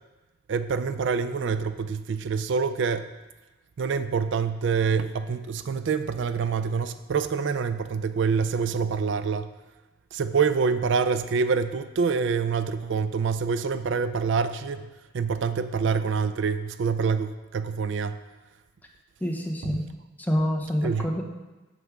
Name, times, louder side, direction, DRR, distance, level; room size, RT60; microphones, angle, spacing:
voice 1, 0.5-3.1 3.8-9.5 10.1-14.9 15.1-18.2 19.6-19.7 20.8-21.1, right 5 dB, 70° right, 12 dB, 0.4 m, -26 dB
voice 2, 19.2-19.8 20.2-21.2, equal, 10° left, 0 dB, 0.9 m, -27 dB
9.2 x 7.4 x 3.5 m, 1.1 s
head